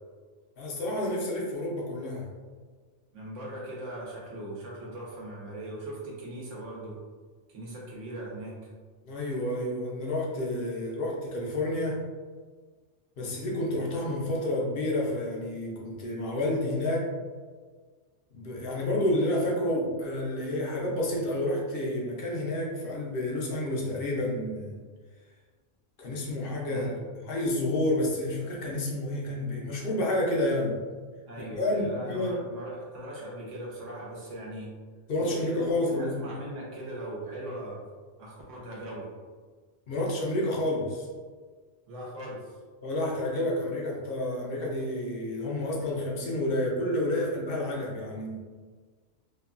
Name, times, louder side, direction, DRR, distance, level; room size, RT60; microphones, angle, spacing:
voice 1, 0.6-2.3 9.0-12.0 13.2-17.1 18.3-24.8 26.0-26.9 27.3-30.8 31.5-32.3 35.1-36.3 39.9-41.1 42.8-48.5, left 1 dB, 60° left, -2 dB, 0.7 m, -29 dB
voice 2, 3.1-7.0 7.5-8.5 26.7-26.9 31.3-34.7 35.2-37.8 38.2-39.1 41.9-42.6, right 1 dB, 80° right, -4 dB, 1.1 m, -39 dB
2.9 x 2.2 x 2.3 m, 1.5 s
omnidirectional pair, 1.3 m